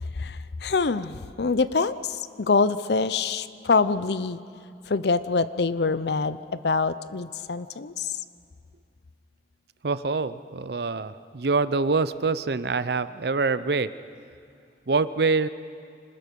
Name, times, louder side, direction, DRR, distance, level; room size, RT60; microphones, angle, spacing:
voice 1, 0.6-2.0 2.5-4.4 4.9-6.4 6.6-7.9, left 4 dB, 65° left, 15 dB, 0.6 m, -24 dB
voice 2, 9.8-13.9 14.9-15.5, right 4 dB, 65° right, 14 dB, 0.6 m, -25 dB
26.0 x 20.0 x 5.4 m, 2.5 s
head